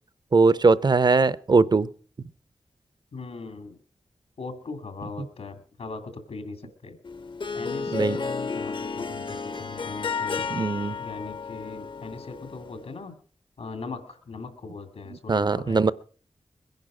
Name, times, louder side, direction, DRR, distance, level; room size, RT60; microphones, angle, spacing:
voice 1, 0.3-1.9 7.9-8.2 10.5-11.0 15.3-15.9, right 4 dB, 45° right, 18 dB, 0.6 m, -20 dB
voice 2, 3.1-3.8 4.4-7.0 7.5-10.5 11.0-13.2 13.6-15.9, left 3 dB, 90° left, 8 dB, 2.3 m, -39 dB
Harp, 7.0-12.8, left 5 dB, 50° left, 0.6 m, -32 dB
21.5 x 10.5 x 4.9 m, 0.43 s
wide cardioid pair, 70°, 10 cm